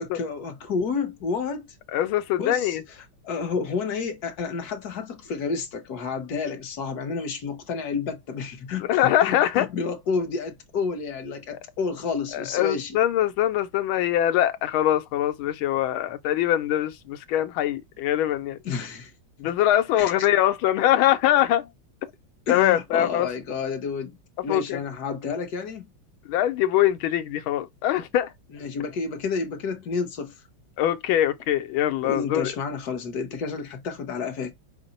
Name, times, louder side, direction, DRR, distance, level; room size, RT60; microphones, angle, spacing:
voice 1, 0.0-1.7 2.4-2.8 3.2-13.0 18.6-19.1 19.9-20.3 22.5-24.2 24.4-25.9 28.5-30.4 32.0-34.5, left 5 dB, 55° left, 1.3 m, -30 dB
voice 2, 1.9-2.8 8.9-9.7 12.3-18.6 19.4-21.7 22.5-23.3 24.5-24.8 26.3-28.3 30.8-32.5, left 12 dB, 80° left, 1.4 m, -23 dB
5.7 x 2.1 x 3.9 m
omnidirectional pair, 2.2 m